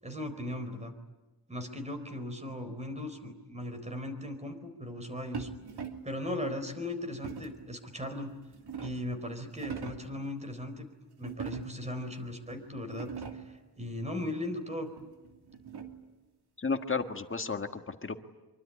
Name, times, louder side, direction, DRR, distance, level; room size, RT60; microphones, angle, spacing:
voice 1, 0.0-0.9 1.5-5.5 6.0-8.3 8.8-10.9 11.2-14.9, left 1 dB, 15° right, 7 dB, 4.1 m, -38 dB
sound 1, 5.3-6.2 7.2-7.7 8.3-9.1 9.5-10.2 11.2-11.9 12.5-12.6 12.9-13.6 15.0-16.1, right 6 dB, 90° right, 2.8 m, -41 dB
voice 2, 16.6-18.2, left 4 dB, 35° left, 7 dB, 1.7 m, -33 dB
25.5 x 23.5 x 9.9 m, 1.2 s
wide cardioid pair, 155°, 38 cm